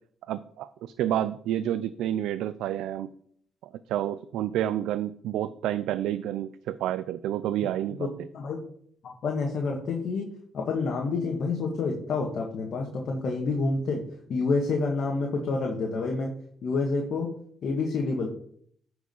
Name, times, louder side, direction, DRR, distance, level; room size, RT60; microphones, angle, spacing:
voice 1, 0.3-3.1 3.6-8.1, right 12 dB, 90° right, 13 dB, 0.4 m, -29 dB
voice 2, 9.0-10.3 10.5-14.0 14.3-16.3 16.6-17.3 17.6-18.3, left 3 dB, 60° left, 0 dB, 1.7 m, -28 dB
10.0 x 4.9 x 5.5 m, 0.62 s
cardioid pair, 90°, 0 cm